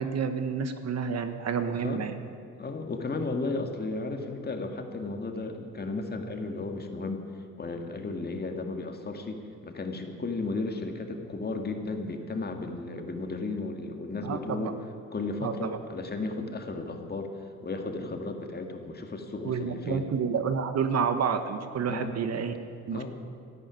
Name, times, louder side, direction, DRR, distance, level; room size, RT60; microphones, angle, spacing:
voice 1, 0.0-2.1 14.2-14.7 15.4-15.8 19.4-22.5 22.9-23.1, right 6 dB, 60° right, 9 dB, 1.3 m, -29 dB
voice 2, 2.6-7.3 7.6-17.3 17.6-20.1 21.9-22.1 22.9-23.1, left 3 dB, 30° left, 4 dB, 2.1 m, -34 dB
13.0 x 11.5 x 9.8 m, 2.4 s
cardioid pair, 90°, 30 cm